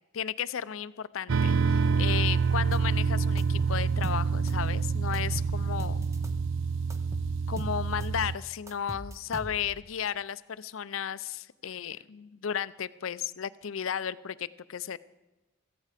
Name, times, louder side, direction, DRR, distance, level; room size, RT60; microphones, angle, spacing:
voice 1, 0.1-6.1 7.5-15.0, left 8 dB, 85° left, 17 dB, 0.5 m, -34 dB
sound 1, 1.3-8.4, right 5 dB, 70° right, 0.5 m, -27 dB
sound 2, 2.7-3.0 3.4-4.7 5.1-6.5 6.9-8.3 8.7-9.8, right 1 dB, 15° right, 0.8 m, -41 dB
16.5 x 14.5 x 5.0 m, 1.1 s
head